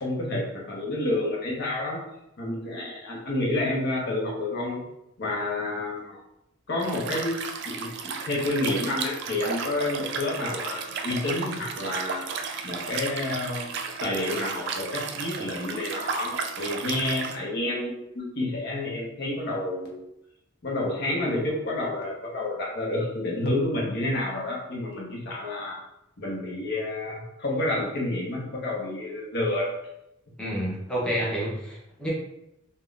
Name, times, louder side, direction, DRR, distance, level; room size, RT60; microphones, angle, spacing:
voice 1, 0.0-2.0 2.4-4.8 5.2-6.2 6.7-7.4 7.7-12.3 12.6-13.7 14.0-20.0 20.6-25.8 26.2-29.7, left 1 dB, 55° left, -2 dB, 0.7 m, -29 dB
Liquid, 6.8-17.4, right 5 dB, 55° right, 0.3 m, -34 dB
voice 2, 30.4-32.1, equal, 5° left, -6 dB, 0.6 m, -29 dB
3.5 x 2.1 x 2.4 m, 0.84 s
head